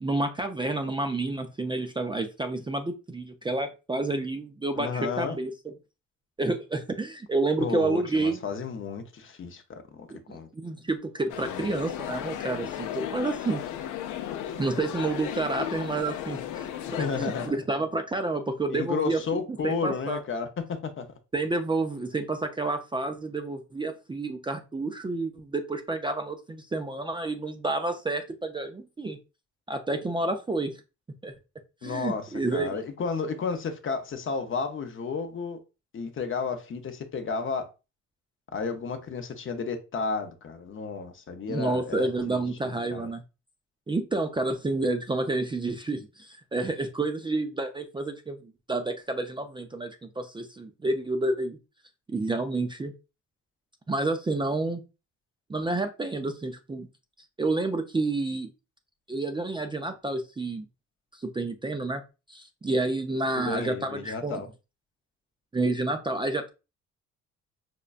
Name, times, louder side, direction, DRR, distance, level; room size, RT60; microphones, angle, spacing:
voice 1, 0.0-4.9 5.2-5.5 6.4-8.4 10.1-13.6 14.6-20.2 21.3-29.2 29.7-30.7 31.2-31.3 31.8-32.8 41.5-43.2 43.9-51.6 52.1-52.9 53.9-54.8 55.5-56.9 57.4-58.5 59.1-60.7 61.2-62.0 62.3-64.4 65.5-66.5, right 2 dB, 15° right, 0.4 m, -29 dB
voice 2, 4.8-5.4 7.6-10.5 11.4-11.8 17.0-17.6 18.7-21.1 31.8-35.6 35.9-37.7 38.5-43.1 63.4-64.5, left 5 dB, 40° left, 0.6 m, -32 dB
sound 1, 11.3-17.5, left 10 dB, 85° left, 0.5 m, -35 dB
5.1 x 2.2 x 2.4 m
cardioid pair, 90°, 30 cm